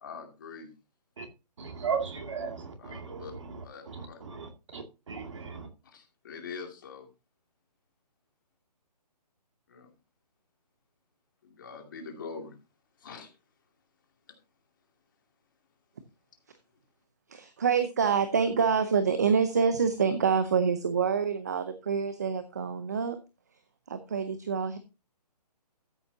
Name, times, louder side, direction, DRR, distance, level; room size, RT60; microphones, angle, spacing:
voice 1, 0.0-0.7 2.8-3.3 3.6-4.2 5.8-7.1 9.7-9.9 11.4-12.6 13.0-13.3, left 5 dB, 30° left, 3 dB, 2.4 m, -44 dB
voice 2, 1.6-5.7, right 6 dB, 45° right, 4 dB, 2.4 m, -37 dB
voice 3, 17.3-23.2 23.9-24.8, right 6 dB, 25° right, 10 dB, 0.7 m, -26 dB
13.5 x 9.3 x 2.8 m, 0.28 s
hypercardioid pair, 175°, 21 cm